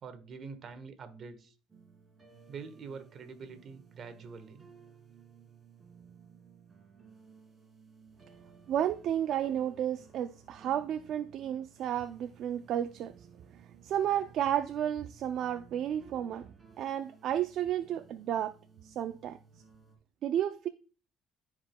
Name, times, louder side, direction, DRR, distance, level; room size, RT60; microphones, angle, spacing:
voice 1, 0.0-1.5 2.5-4.7, right 5 dB, 50° right, 1.3 m, -45 dB
sound 1, 1.7-20.0, right 6 dB, 25° right, 2.6 m, -58 dB
voice 2, 8.7-13.3 13.8-16.5 16.8-18.6 18.8-19.4 20.2-20.7, right 10 dB, 65° right, 0.4 m, -32 dB
13.0 x 4.9 x 2.2 m
cardioid pair, 95°, 0 cm